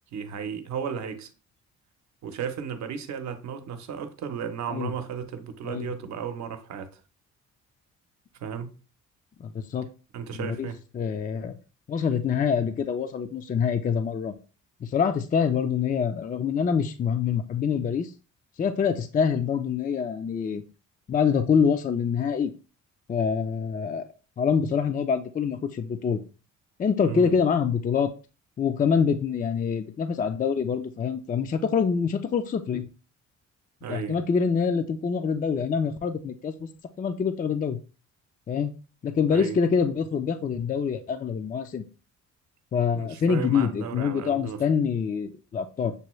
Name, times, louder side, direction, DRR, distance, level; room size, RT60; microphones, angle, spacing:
voice 1, 0.1-1.3 2.2-7.0 8.4-8.7 10.1-10.8 27.1-27.3 33.8-34.2 39.3-39.6 42.9-44.6, right 7 dB, 70° right, 0.8 m, -34 dB
voice 2, 9.4-9.9 10.4-10.7 10.9-11.5 11.9-14.3 14.8-18.1 18.6-20.6 21.1-22.5 23.1-24.0 24.4-26.2 26.8-28.1 28.6-32.9 33.9-36.7 37.0-37.8 38.5-38.7 39.0-41.8 42.7-45.9, left 6 dB, 30° left, 0.4 m, -25 dB
6.7 x 2.2 x 3.1 m
cardioid pair, 90°, 30 cm